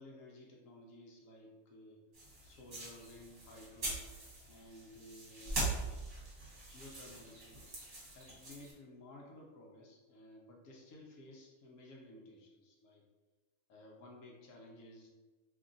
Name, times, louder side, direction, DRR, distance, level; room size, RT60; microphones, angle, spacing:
voice 1, 0.0-2.0 2.4-4.1 4.5-5.9 6.7-7.6 8.1-13.0 13.7-15.1, left 1 dB, 70° left, -1 dB, 1.0 m, -55 dB
sound 1, 2.1-8.7, right 2 dB, 45° right, 1.2 m, -42 dB
2.7 x 2.4 x 3.8 m, 1.2 s
omnidirectional pair, 1.5 m